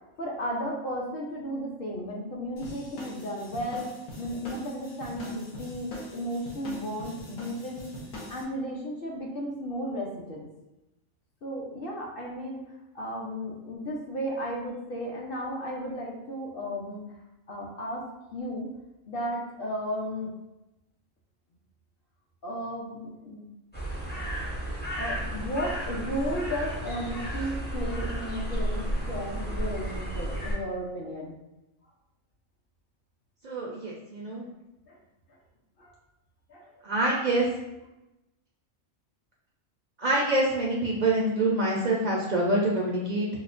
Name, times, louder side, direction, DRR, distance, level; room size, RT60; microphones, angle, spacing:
voice 1, 0.2-7.8 8.3-10.5 11.4-12.6 12.9-17.0 17.5-18.0 18.3-18.7 19.1-20.3 22.4-23.5 25.0-31.3 34.9-35.0 35.8-35.9 36.5-36.8, equal, 55° left, -3 dB, 0.7 m, -34 dB
sound 1, 2.6-8.4, left 1 dB, 80° left, 1.2 m, -43 dB
sound 2, 23.7-30.6, right 1 dB, 15° left, 0.3 m, -32 dB
voice 2, 33.4-34.5 36.8-37.5 40.0-43.3, right 2 dB, 70° right, -3 dB, 0.4 m, -26 dB
4.8 x 2.1 x 2.4 m, 0.96 s
omnidirectional pair, 1.3 m